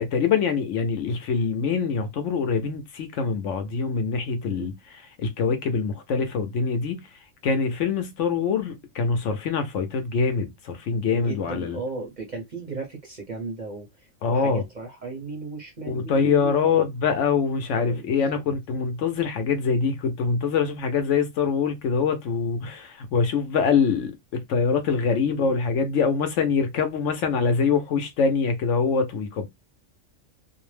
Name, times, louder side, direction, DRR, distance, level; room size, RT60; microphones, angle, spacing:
voice 1, 0.0-4.7 5.2-11.8 14.2-14.6 15.9-29.5, left 5 dB, 70° left, 0.8 m, -24 dB
voice 2, 11.0-16.8 17.8-18.4 25.2-25.5, right 3 dB, 45° right, 0.6 m, -36 dB
2.5 x 2.0 x 3.1 m
omnidirectional pair, 1.4 m